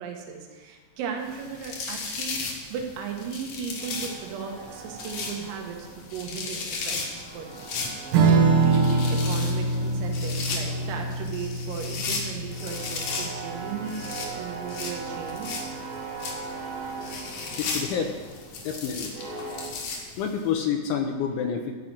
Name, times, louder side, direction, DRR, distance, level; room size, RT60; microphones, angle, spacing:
voice 1, 0.0-5.8 6.1-7.6 8.3-14.1 14.4-15.6, right 6 dB, 90° right, 2 dB, 4.0 m, -36 dB
sound 1, 1.3-20.4, left 4 dB, 65° left, 2.4 m, -36 dB
sound 2, 3.8-6.3 6.6-10.2 10.5-19.7, right 4 dB, 55° right, 1.6 m, -40 dB
Strum, 8.1-15.0, right 4 dB, 75° right, 2.1 m, -25 dB
voice 2, 17.5-18.1 18.7-19.1 20.2-21.7, left 7 dB, 80° left, 4 dB, 2.9 m, -28 dB
13.5 x 5.3 x 7.6 m, 1.4 s
omnidirectional pair, 5.8 m